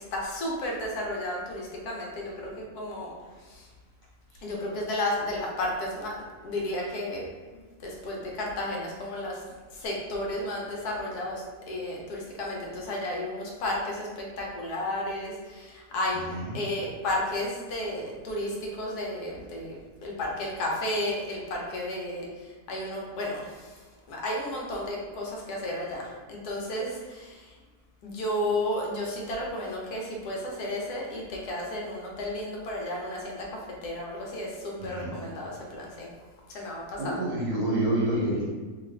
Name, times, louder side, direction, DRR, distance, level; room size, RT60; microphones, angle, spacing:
voice 1, 0.1-3.1 4.4-6.1 6.4-7.3 7.8-9.3 9.8-11.4 11.7-19.8 20.0-22.2 22.7-23.4 24.1-26.0 26.3-27.3 28.0-33.5 33.8-36.1 36.5-37.2, left 1 dB, 75° left, -2 dB, 1.2 m, -32 dB
voice 2, 16.1-16.6 34.8-35.1 37.0-38.4, right 1 dB, 75° right, -5 dB, 1.4 m, -28 dB
3.0 x 2.4 x 3.2 m, 1.4 s
omnidirectional pair, 1.7 m